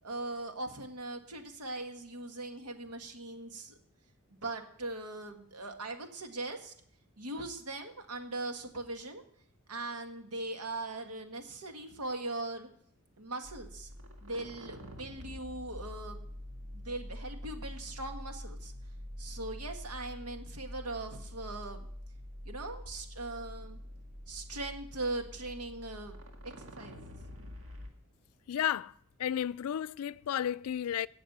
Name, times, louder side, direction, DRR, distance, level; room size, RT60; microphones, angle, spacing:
voice 1, 0.0-3.8 4.3-6.7 7.2-9.2 9.7-12.7 13.2-13.9 14.2-16.2 16.7-18.7 19.2-21.9 22.4-23.8 24.3-26.2 26.6-27.1, right 2 dB, 85° right, 1.7 m, -40 dB
sound 1, 13.4-27.9, equal, 60° right, 1.9 m, -46 dB
voice 2, 28.5-28.9 29.2-31.1, left 10 dB, 75° left, 0.4 m, -32 dB
17.0 x 6.7 x 5.5 m
head